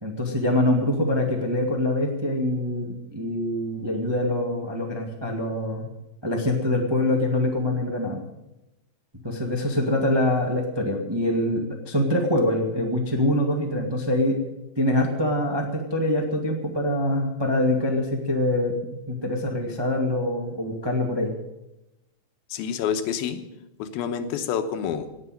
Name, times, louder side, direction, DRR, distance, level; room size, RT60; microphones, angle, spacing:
voice 1, 0.0-5.9 6.2-8.2 9.2-14.4 14.8-21.3, left 1 dB, 25° right, 1 dB, 0.5 m, -24 dB
voice 2, 22.5-23.4 23.8-25.1, left 8 dB, 80° left, 8 dB, 2.8 m, -28 dB
18.0 x 7.4 x 9.0 m, 0.94 s
omnidirectional pair, 4.3 m